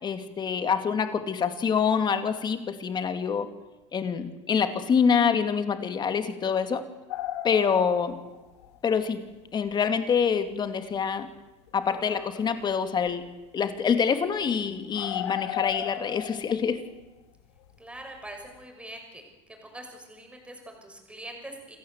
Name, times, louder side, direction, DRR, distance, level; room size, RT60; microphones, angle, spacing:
voice 1, 0.0-3.5 3.9-6.8 7.4-8.1 8.8-9.2 9.5-11.3 11.7-13.2 13.5-16.8, left 6 dB, 30° left, 8 dB, 2.5 m, -26 dB
sound 1, 7.1-8.8 9.1-9.2 9.7-9.8 10.5-10.6 11.7-12.7 13.0-13.3 13.7-13.8 14.2-14.3 14.4-14.5 14.9-18.0 18.3-18.6, left 13 dB, 85° left, 2.1 m, -36 dB
voice 2, 17.8-19.2 19.6-21.8, right 1 dB, 10° right, 3 dB, 6.4 m, -43 dB
27.5 x 14.0 x 8.1 m, 1.1 s
supercardioid pair, 110°, 14 cm